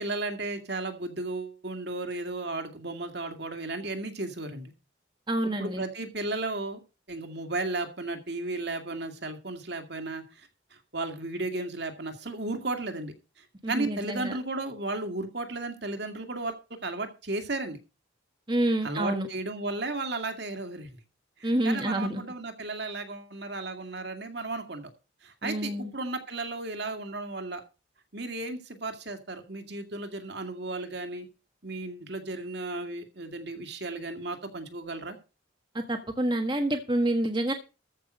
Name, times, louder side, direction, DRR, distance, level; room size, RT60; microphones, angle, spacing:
voice 1, 0.0-4.7 5.6-6.8 7.1-10.2 10.7-13.1 13.7-17.8 18.8-20.9 21.4-24.8 25.2-27.6 28.1-31.3 31.6-35.2, right 2 dB, 60° right, 6 dB, 2.2 m, -34 dB
voice 2, 5.3-5.8 13.6-14.4 18.5-19.3 21.4-22.2 25.4-25.9 35.7-37.5, right 1 dB, 25° right, 4 dB, 1.4 m, -28 dB
14.0 x 6.0 x 6.4 m, 0.31 s
head